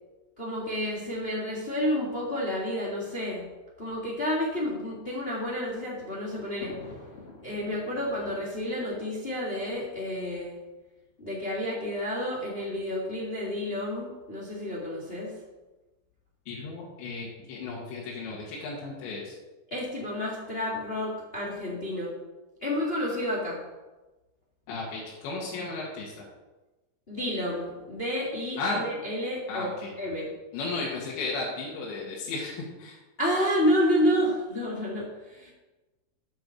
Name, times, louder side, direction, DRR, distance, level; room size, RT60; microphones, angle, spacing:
voice 1, 0.4-3.5 3.8-6.8 7.4-10.6 11.2-15.3 19.7-22.1 22.6-23.6 27.1-29.7 30.0-30.3 33.2-35.5, equal, 30° left, -3 dB, 1.1 m, -30 dB
Thunder, 5.2-10.5 11.3-11.4 11.6-11.7 12.8-13.1, left 3 dB, 55° left, 1.6 m, -49 dB
voice 2, 16.5-19.4 24.7-26.3 28.6-28.8 29.5-30.0 30.5-33.0, left 3 dB, 85° left, -4 dB, 4.0 m, -34 dB
9.0 x 7.9 x 6.9 m, 1.1 s
omnidirectional pair, 5.0 m